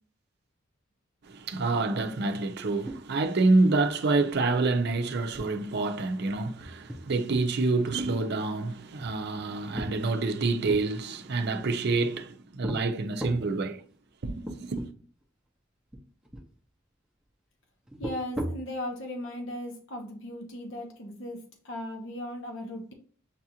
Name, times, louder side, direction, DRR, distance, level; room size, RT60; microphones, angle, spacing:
voice 1, 1.2-13.8 14.2-14.8, right 3 dB, 55° right, 0.6 m, -27 dB
sound 1, 2.9-3.4 3.6-3.7 4.1-4.4 4.8-4.9 5.3-7.5 7.8-8.5 9.0-10.9 11.6-12.2 12.6-12.8 13.2-13.5 14.1-14.2 14.5-14.9 15.2-15.3 15.9-16.5 17.9-18.7, equal, 5° right, 0.6 m, -37 dB
voice 2, 18.0-22.9, left 1 dB, 65° left, 1.0 m, -37 dB
7.2 x 2.5 x 2.8 m
head